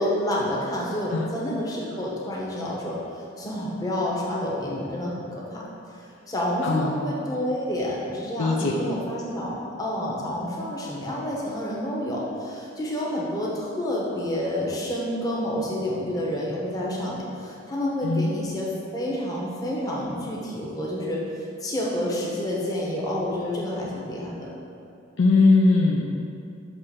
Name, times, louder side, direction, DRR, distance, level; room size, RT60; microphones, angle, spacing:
voice 1, 0.0-3.0 3.4-5.6 6.3-24.5, left 1 dB, 15° left, -5 dB, 0.9 m, -29 dB
voice 2, 6.6-7.0 8.4-8.7 18.0-18.3 25.2-26.2, left 3 dB, 65° left, 0 dB, 0.5 m, -20 dB
6.6 x 3.2 x 6.0 m, 2.6 s
head